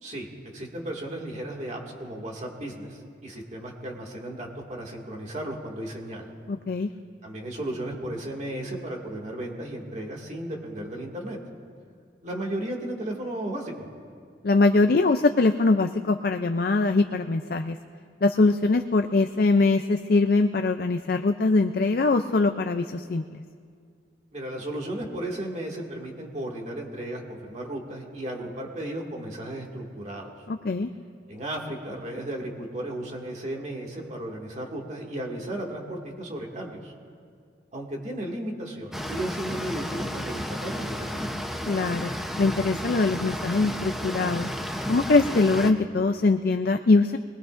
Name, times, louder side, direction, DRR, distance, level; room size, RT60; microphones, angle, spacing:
voice 1, 0.0-6.3 7.2-11.4 12.2-13.9 24.3-30.3 31.3-36.9 37.7-41.3, right 1 dB, 40° right, -1 dB, 2.1 m, -35 dB
voice 2, 6.5-6.9 14.4-17.8 18.2-23.4 30.5-30.9 41.7-42.1 42.4-44.5 44.9-47.2, left 3 dB, 55° left, 7 dB, 0.5 m, -22 dB
sound 1, 38.9-45.7, equal, ahead, 0.8 m, -32 dB
23.5 x 20.0 x 2.6 m, 2.2 s
head